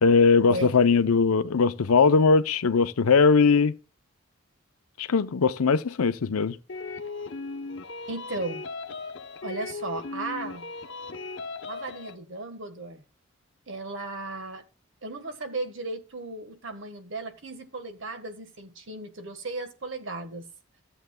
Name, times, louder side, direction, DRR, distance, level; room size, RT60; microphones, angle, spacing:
voice 1, 0.0-3.7 5.0-6.6, left 5 dB, 90° left, 0.6 m, -20 dB
sound 1, 6.7-12.2, left 3 dB, 60° left, 0.8 m, -37 dB
voice 2, 8.1-8.6 9.4-10.7 11.6-13.0 13.7-14.6 15.0-20.5, right 2 dB, 60° right, 1.4 m, -35 dB
14.5 x 7.8 x 2.2 m
head